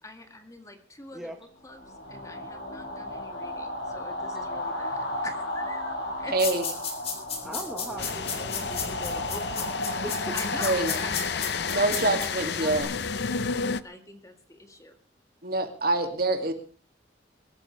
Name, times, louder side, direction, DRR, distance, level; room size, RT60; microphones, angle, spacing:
voice 1, 0.0-1.3 1.6-6.3 10.3-14.9, left 2 dB, 20° left, 5 dB, 2.0 m, -44 dB
sound 1, 1.7-12.8, left 1 dB, 90° left, 6.7 m, -35 dB
voice 2, 6.3-6.7 9.9-10.0 10.6-10.9 11.7-12.9 15.4-16.5, right 2 dB, 55° right, 5 dB, 2.5 m, -26 dB
sound 2, 6.4-12.3, left 6 dB, 35° left, 4.0 m, -33 dB
voice 3, 7.4-10.4, equal, ahead, 3 dB, 1.3 m, -40 dB
sound 3, 8.0-13.8, left 5 dB, 65° left, 0.7 m, -32 dB
23.0 x 13.5 x 3.4 m, 0.38 s
head